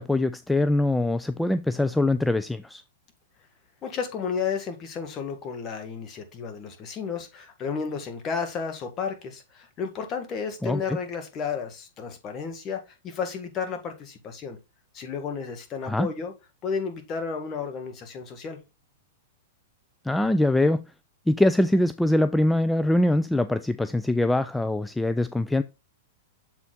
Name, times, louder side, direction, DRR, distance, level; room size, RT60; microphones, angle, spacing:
voice 1, 0.0-2.8 10.6-10.8 15.8-16.1 20.0-20.9 21.3-25.6, left 1 dB, 5° left, 0.3 m, -23 dB
voice 2, 3.8-14.6 14.9-16.3 16.6-18.6, left 6 dB, 30° left, 1.7 m, -32 dB
7.1 x 4.1 x 3.9 m
hypercardioid pair, 110°, 0 cm